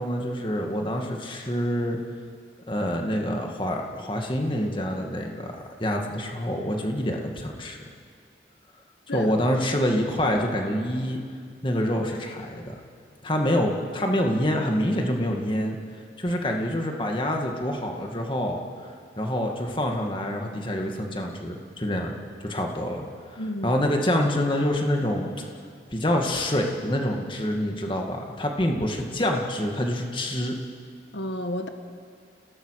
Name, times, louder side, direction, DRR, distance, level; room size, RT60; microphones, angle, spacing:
voice 1, 0.0-2.0 2.7-5.5 5.8-7.8 9.1-11.2 11.6-12.8 13.2-15.8 16.2-18.9 19.2-22.2 22.4-23.1 23.3-25.3 25.9-30.6, equal, 30° left, 2 dB, 2.0 m, -26 dB
voice 2, 23.4-23.8 31.1-31.7, left 1 dB, 85° left, 6 dB, 1.4 m, -31 dB
29.0 x 18.0 x 6.6 m, 2.1 s
head